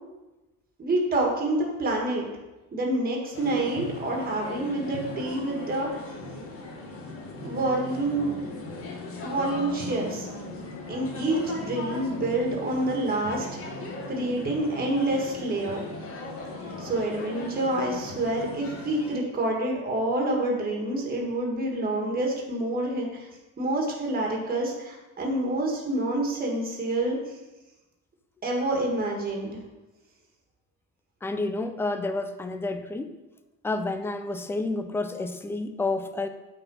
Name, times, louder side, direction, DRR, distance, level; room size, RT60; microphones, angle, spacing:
voice 1, 0.8-2.3 2.7-6.0 7.4-8.3 9.2-10.3 10.9-13.8 14.1-15.8 16.8-23.3 23.6-27.4 28.4-29.5, right 1 dB, 25° right, 0 dB, 1.7 m, -27 dB
sound 1, 3.3-19.2, left 2 dB, 40° left, 1.6 m, -38 dB
voice 2, 31.2-33.1 33.6-36.3, left 2 dB, 5° left, 8 dB, 0.3 m, -30 dB
9.1 x 4.2 x 5.5 m, 1.1 s
cardioid pair, 150°, 35 cm